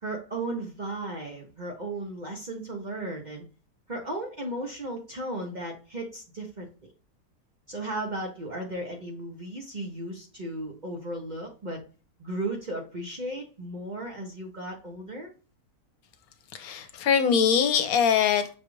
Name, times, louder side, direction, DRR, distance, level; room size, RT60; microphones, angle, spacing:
voice 1, 0.0-3.4 3.9-6.9 7.7-11.8 12.2-15.3, right 1 dB, 40° right, 0.7 m, -35 dB
voice 2, 16.5-18.6, left 7 dB, 75° left, 1.1 m, -23 dB
6.1 x 2.4 x 3.0 m
omnidirectional pair, 1.6 m